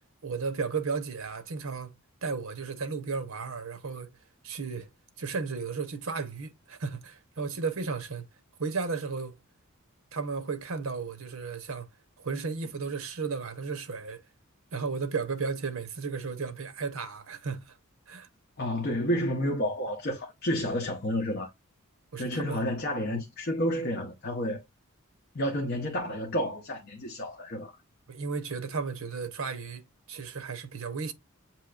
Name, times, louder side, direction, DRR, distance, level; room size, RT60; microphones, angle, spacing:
voice 1, 0.2-4.2 4.4-4.9 5.2-8.3 8.6-9.4 10.1-11.9 12.2-14.2 14.7-17.8 18.1-18.3 22.1-22.6 28.1-31.1, right 4 dB, 75° right, 0.9 m, -34 dB
voice 2, 18.6-21.5 22.2-24.6 25.3-27.8, equal, 45° left, 0.8 m, -30 dB
7.4 x 2.8 x 2.4 m
head